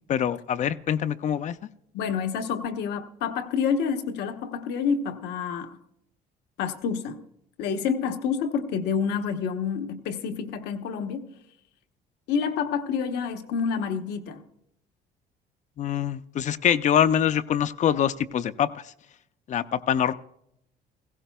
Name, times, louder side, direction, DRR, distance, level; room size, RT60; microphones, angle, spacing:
voice 1, 0.1-1.6 15.8-18.8 19.5-20.1, left 9 dB, 45° left, 12 dB, 0.5 m, -24 dB
voice 2, 1.9-5.7 6.6-7.2 7.6-11.3 12.3-14.4, left 6 dB, 85° left, 6 dB, 1.0 m, -28 dB
16.5 x 16.0 x 2.3 m, 0.76 s
cardioid pair, 110°, 17 cm